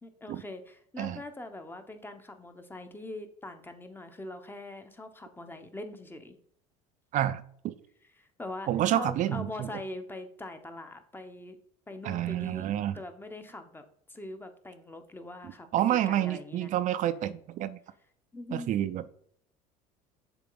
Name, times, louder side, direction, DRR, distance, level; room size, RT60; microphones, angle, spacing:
voice 1, 0.0-6.3 8.2-11.6 11.9-12.7 12.9-16.7 18.3-18.7, left 2 dB, 15° left, 7 dB, 1.0 m, -42 dB
voice 2, 7.1-7.7 8.7-9.7 12.0-12.9 15.7-17.8 18.5-19.0, right 12 dB, 50° right, 14 dB, 0.5 m, -29 dB
7.0 x 3.7 x 3.9 m, 0.65 s
supercardioid pair, 90°, 16 cm